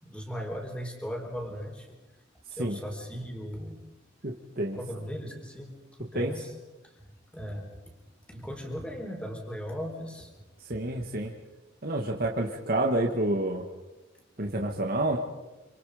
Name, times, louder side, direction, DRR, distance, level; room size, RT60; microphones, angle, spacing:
voice 1, 0.0-1.9 2.6-3.8 4.8-5.7 6.0-6.5 6.8-6.9 7.3-7.7 8.3-10.3 14.4-14.5, equal, 5° left, 2 dB, 4.3 m, -37 dB
voice 2, 4.2-4.8 6.1-6.3 10.6-11.3 11.8-13.6 14.4-15.2, right 1 dB, 50° right, 1 dB, 1.9 m, -28 dB
28.0 x 27.5 x 5.1 m, 1.1 s
head